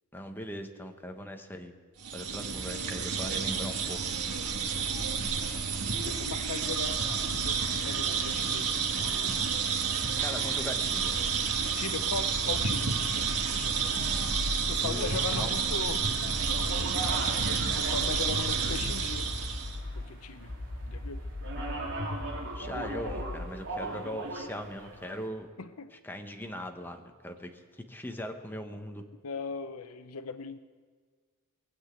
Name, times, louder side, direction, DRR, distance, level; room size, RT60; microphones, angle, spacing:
voice 1, 0.1-1.7 2.1-4.0 10.2-11.2 14.8-15.6 22.5-25.5 26.0-27.5 27.9-29.0, left 1 dB, 10° left, 5 dB, 1.1 m, -40 dB
sound 1, 2.0-19.8, right 5 dB, 90° right, 1.5 m, -30 dB
voice 2, 4.8-5.7 6.0-9.4 11.8-14.0 14.7-16.9 17.7-19.5 20.0-20.5 20.9-21.2 25.6-25.9 29.2-30.6, left 5 dB, 70° left, 11 dB, 0.7 m, -39 dB
sound 2, 7.0-25.3, right 2 dB, 60° right, 3.5 m, -42 dB
sound 3, 17.1-20.1 20.5-23.5, left 2 dB, 50° left, 1.0 m, -39 dB
20.5 x 8.0 x 8.4 m, 1.5 s
head